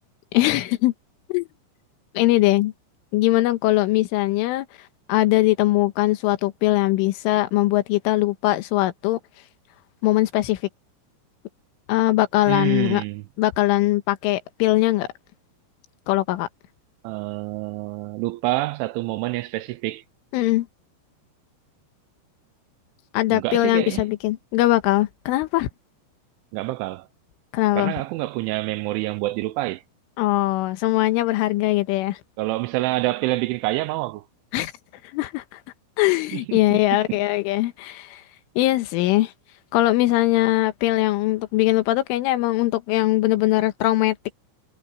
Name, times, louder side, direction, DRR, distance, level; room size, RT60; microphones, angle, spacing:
voice 1, 0.3-0.9 1.3-1.5 2.2-2.7 3.1-4.7 5.1-9.2 10.0-10.6 11.9-13.0 13.4-15.1 16.1-16.5 20.3-20.7 23.1-25.7 27.5-27.9 30.2-32.2 34.5-34.7 35.1-35.6 36.0-38.2 38.6-39.3 39.7-44.3, left 17 dB, 80° left, 3.6 m, -21 dB
voice 2, 12.5-13.2 17.0-20.0 23.3-24.0 26.5-27.1 27.8-29.8 32.4-34.2 36.3-36.8 37.1-37.2, right 19 dB, 85° right, 2.9 m, -27 dB
omnidirectional pair, 5.7 m